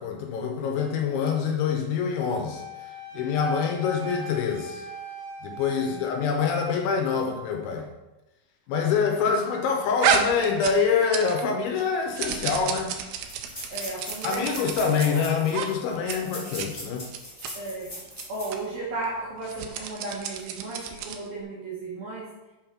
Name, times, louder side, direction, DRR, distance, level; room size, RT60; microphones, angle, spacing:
voice 1, 0.0-2.6 3.1-4.9 5.4-7.9 8.7-12.9 14.2-17.1, left 6 dB, 80° left, 3 dB, 3.0 m, -25 dB
Wind instrument woodwind instrument, 2.4-6.7, equal, 30° right, 2.6 m, -40 dB
voice 2, 5.8-6.1 13.7-15.2 17.5-17.9 18.3-22.3, right 2 dB, 65° right, -6 dB, 2.5 m, -35 dB
sound 1, 10.0-11.5 11.8-15.1 15.5-15.7 16.0-16.2 16.4-16.7 17.1-17.5 18.1-18.2 18.5-18.6 19.4-21.3, right 7 dB, 90° right, 2.4 m, -30 dB
sound 2, 12.1-12.2 12.4-12.5 13.2-18.6 19.0-19.1 19.6-19.8, left 1 dB, 20° left, 1.5 m, -40 dB
7.1 x 5.3 x 5.9 m, 1.0 s
omnidirectional pair, 5.7 m